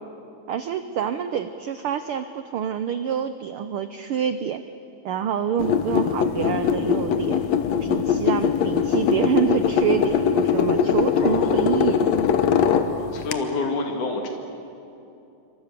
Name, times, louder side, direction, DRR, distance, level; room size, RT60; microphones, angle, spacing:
voice 1, 0.5-4.6 5.0-7.4 7.8-12.1, right 8 dB, 85° right, 10 dB, 1.2 m, -27 dB
sound 1, 5.6-13.3, left 7 dB, 70° left, 2.1 m, -21 dB
voice 2, 11.2-11.6 12.9-14.3, left 3 dB, 85° left, 2 dB, 3.6 m, -28 dB
27.5 x 24.5 x 6.8 m, 2.8 s
omnidirectional pair, 3.4 m